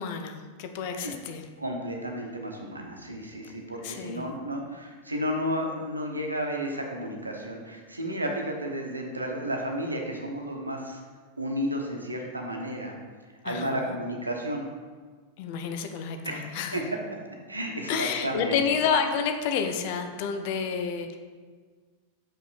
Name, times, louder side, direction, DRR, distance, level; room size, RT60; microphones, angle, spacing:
voice 1, 0.0-1.5 3.4-3.5 3.8-4.4 13.4-14.0 15.4-16.8 17.9-21.2, left 6 dB, 50° left, 6 dB, 0.6 m, -30 dB
voice 2, 1.6-11.0 11.4-12.9 13.4-14.7 16.2-16.8 17.5-18.6, equal, 80° right, 1 dB, 1.0 m, -32 dB
6.2 x 5.5 x 4.2 m, 1.5 s
figure-of-eight pair, 90°, 0 cm